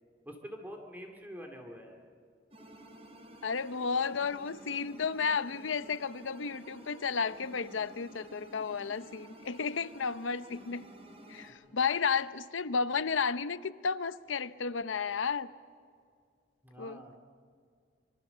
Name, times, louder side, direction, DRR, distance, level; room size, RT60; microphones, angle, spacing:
voice 1, 0.3-2.0 11.7-11.8 16.6-17.2, equal, 10° right, 2 dB, 2.2 m, -46 dB
sound 1, 2.5-11.5, right 1 dB, 30° right, 3.8 m, -52 dB
voice 2, 3.4-10.8 11.3-15.5 16.8-17.0, left 5 dB, 85° left, 14 dB, 0.7 m, -32 dB
25.0 x 24.5 x 6.8 m, 2.2 s
head